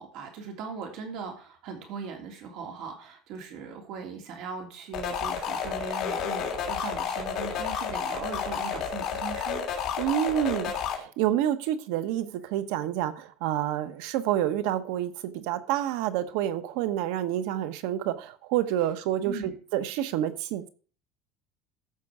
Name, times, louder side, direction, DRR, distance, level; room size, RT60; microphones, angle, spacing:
voice 1, 0.0-9.6 19.2-19.6, right 5 dB, 55° right, 3.2 m, -39 dB
sound 1, 4.9-10.9, left 7 dB, 40° left, 3.0 m, -31 dB
voice 2, 10.0-20.7, right 11 dB, 75° right, 1.0 m, -28 dB
14.0 x 6.0 x 4.9 m
cardioid pair, 160°, 0 cm